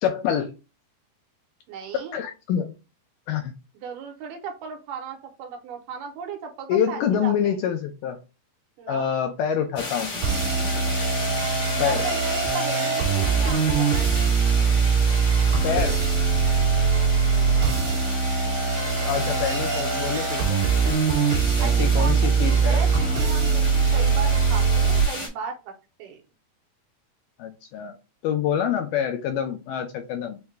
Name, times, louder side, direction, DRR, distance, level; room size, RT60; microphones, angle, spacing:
voice 1, 0.0-0.5 1.9-2.7 3.3-3.5 6.7-8.2 8.9-10.1 11.8-12.1 15.6-16.0 19.0-20.6 21.6-22.9 27.4-28.0 28.2-30.4, left 8 dB, 80° left, 5 dB, 1.9 m, -26 dB
voice 2, 1.7-2.1 3.8-7.6 8.8-9.1 11.7-14.1 17.2-17.9 21.6-25.7 26.0-26.2, right 5 dB, 80° right, 3 dB, 2.2 m, -36 dB
sound 1, 9.8-25.3, left 3 dB, 60° left, 1.1 m, -33 dB
sound 2, 10.2-25.0, right 5 dB, 50° right, 1.8 m, -22 dB
5.7 x 2.2 x 3.1 m, 0.30 s
omnidirectional pair, 4.1 m